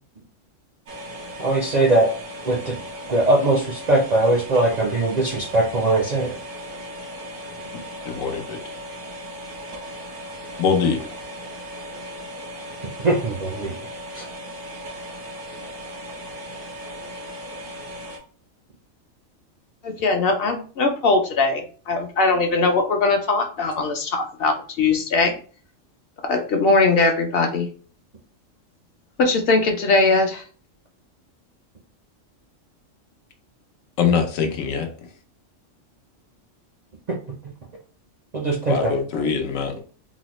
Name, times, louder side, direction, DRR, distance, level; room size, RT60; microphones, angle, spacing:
sound 1, 0.9-18.2, equal, 90° right, 1.4 m, -37 dB
voice 1, 1.4-2.1 2.4-2.8 3.1-6.3 13.0-13.8 14.1-14.2 37.1-37.2 38.3-38.9, right 2 dB, 55° right, -1 dB, 0.4 m, -20 dB
voice 2, 8.1-8.6 10.6-11.0 34.0-34.9 38.7-39.8, left 6 dB, 80° left, 4 dB, 1.1 m, -22 dB
voice 3, 19.8-25.4 26.3-27.7 29.2-30.4, left 3 dB, 60° left, 4 dB, 0.7 m, -20 dB
3.8 x 2.0 x 3.0 m, 0.40 s
omnidirectional pair, 1.4 m